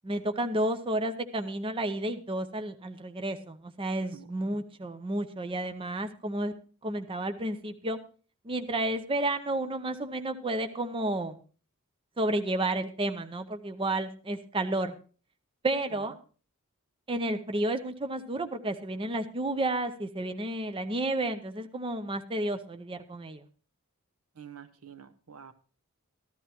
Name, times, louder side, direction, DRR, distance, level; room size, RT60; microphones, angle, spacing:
voice 1, 0.0-6.5 6.8-8.0 8.4-11.3 12.2-14.9 15.6-16.2 17.1-23.4, right 1 dB, 25° right, 8 dB, 0.6 m, -31 dB
voice 2, 4.1-4.6 15.9-16.1 24.3-25.5, right 8 dB, 80° right, 9 dB, 0.9 m, -49 dB
14.5 x 12.0 x 2.9 m, 0.38 s
head